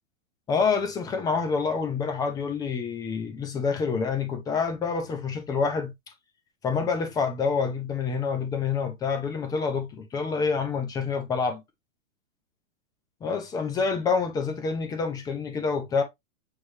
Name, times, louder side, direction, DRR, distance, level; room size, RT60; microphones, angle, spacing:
voice 1, 0.5-5.9 6.6-11.6 13.2-16.0, left 5 dB, 10° left, 0.6 m, -27 dB
6.5 x 3.0 x 2.7 m
hypercardioid pair, 155°, 40 cm